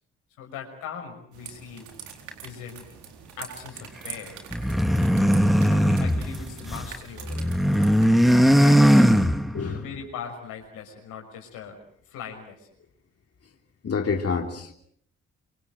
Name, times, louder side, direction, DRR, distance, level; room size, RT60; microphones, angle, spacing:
voice 1, 0.4-1.9 2.4-2.8 3.4-4.4 5.7-7.5 8.4-9.1 9.7-11.8 12.1-12.7, left 7 dB, 90° left, 2 dB, 6.1 m, -40 dB
sound 1, 1.3-8.1, right 7 dB, 80° right, 4.2 m, -44 dB
sound 2, 4.5-6.9 7.2-9.8, equal, ahead, 2.0 m, -19 dB
voice 2, 9.5-9.9 13.4-13.5 13.8-14.7, left 5 dB, 50° left, 3 dB, 3.2 m, -28 dB
27.0 x 24.5 x 7.6 m, 0.66 s
supercardioid pair, 50°, 30 cm